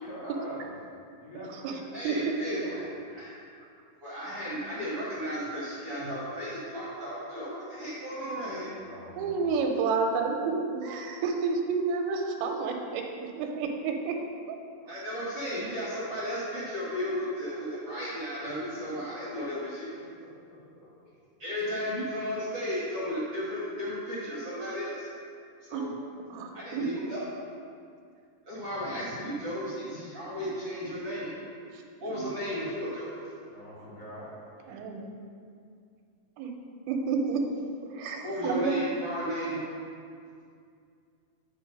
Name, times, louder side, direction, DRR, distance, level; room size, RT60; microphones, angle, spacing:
voice 1, 0.0-0.7 1.2-2.9 8.8-9.5 18.8-18.9 20.5-20.9 33.5-34.4, equal, 55° left, -9 dB, 2.2 m, -44 dB
voice 2, 1.9-3.3 4.0-8.8 14.9-19.9 21.4-25.1 25.6-25.9 26.5-27.3 28.4-31.5 32.0-33.2 38.2-39.6, equal, 60° right, -8 dB, 1.6 m, -34 dB
voice 3, 9.2-14.2 14.9-15.0 25.7-25.9 26.3-26.8 34.7-35.1 36.4-36.5 36.9-37.4 37.9-38.8, right 5 dB, 85° right, 3 dB, 2.5 m, -30 dB
9.4 x 3.7 x 5.2 m, 2.3 s
omnidirectional pair, 4.4 m